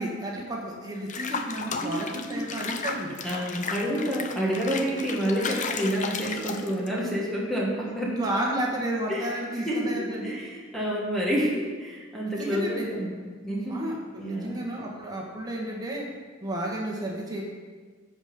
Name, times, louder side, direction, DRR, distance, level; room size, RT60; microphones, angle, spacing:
voice 1, 0.0-3.1 8.0-10.4 12.3-12.9 13.7-16.1 16.4-17.4, right 1 dB, 20° right, -3 dB, 1.6 m, -32 dB
Water / Bathtub (filling or washing), 1.1-7.0, left 5 dB, 40° left, 0.7 m, -34 dB
voice 2, 3.2-8.2 9.1-13.1 13.4-13.8 14.2-14.6, equal, ahead, -5 dB, 1.5 m, -29 dB
15.0 x 5.2 x 5.3 m, 1.5 s
head